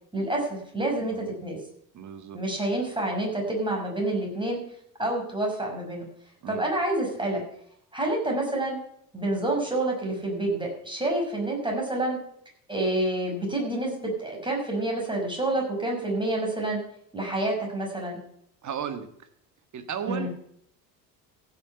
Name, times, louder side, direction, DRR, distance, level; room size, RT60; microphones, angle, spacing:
voice 1, 0.1-1.1 1.4-1.6 2.3-4.6 5.0-6.1 6.5-7.4 7.9-8.8 9.1-12.2 12.7-13.9 14.2-16.8 17.1-18.2 20.1-20.3, right 1 dB, 10° right, -1 dB, 5.5 m, -28 dB
voice 2, 1.0-1.4 1.9-2.4 6.4-6.7 18.6-19.3 19.7-20.3, right 8 dB, 35° right, 9 dB, 1.6 m, -35 dB
15.5 x 7.1 x 5.8 m, 0.69 s
figure-of-eight pair, 65°, 49 cm